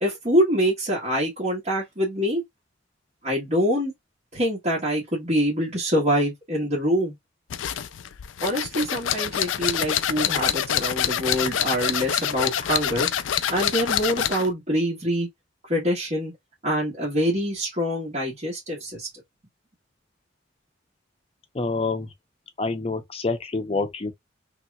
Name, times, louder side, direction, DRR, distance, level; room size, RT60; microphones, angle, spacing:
voice 1, 0.0-2.4 3.2-3.9 4.3-7.1 8.4-13.1 13.5-15.3 15.7-16.3 16.6-19.1, equal, 40° right, 1.4 m, -25 dB
sound 1, 7.5-14.5, left 10 dB, 75° left, 0.4 m, -26 dB
voice 2, 21.5-22.1 22.6-24.1, left 3 dB, 30° left, 0.7 m, -27 dB
3.3 x 2.9 x 2.3 m
head